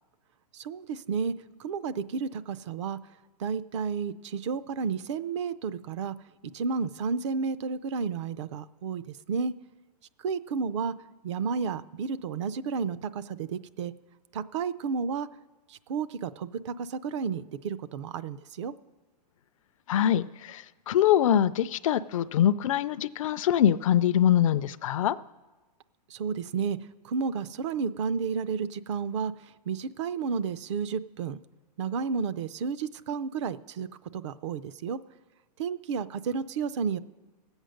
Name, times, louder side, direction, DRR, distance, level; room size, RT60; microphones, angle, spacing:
voice 1, 0.5-1.3 1.6-3.0 3.4-6.1 6.5-9.5 10.2-10.9 11.2-13.9 14.3-15.3 15.7-18.7 26.1-26.8 27.0-29.3 29.7-31.4 31.8-33.9 34.1-35.0 35.6-37.0, right 5 dB, 45° right, 15 dB, 0.5 m, -31 dB
voice 2, 19.9-25.2, left 10 dB, 50° left, 15 dB, 0.4 m, -24 dB
17.5 x 8.1 x 6.4 m, 1.2 s
hypercardioid pair, 165°, 21 cm